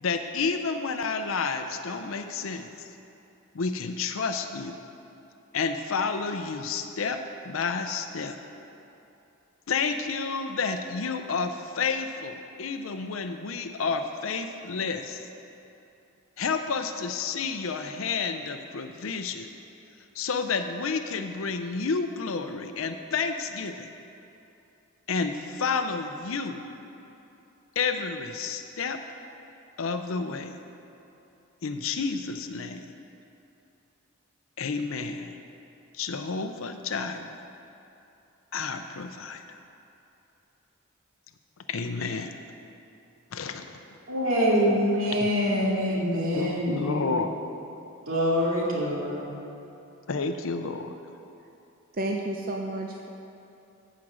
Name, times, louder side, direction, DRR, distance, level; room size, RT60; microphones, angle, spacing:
voice 1, 0.0-2.7 3.5-4.8 5.5-8.4 9.7-15.2 16.4-19.5 20.2-23.9 25.1-26.6 27.8-29.0 29.8-30.6 31.6-32.9 34.6-35.4 35.9-37.4 38.5-39.6 41.7-42.4 43.3-43.6 45.2-45.3 46.3-47.4 50.1-50.9, left 4 dB, 75° left, 7 dB, 0.6 m, -30 dB
voice 2, 44.1-47.2 48.1-49.3, equal, 75° right, -4 dB, 2.3 m, -25 dB
voice 3, 51.9-53.1, right 1 dB, 45° right, 1 dB, 0.6 m, -32 dB
14.5 x 5.1 x 6.3 m, 2.8 s
head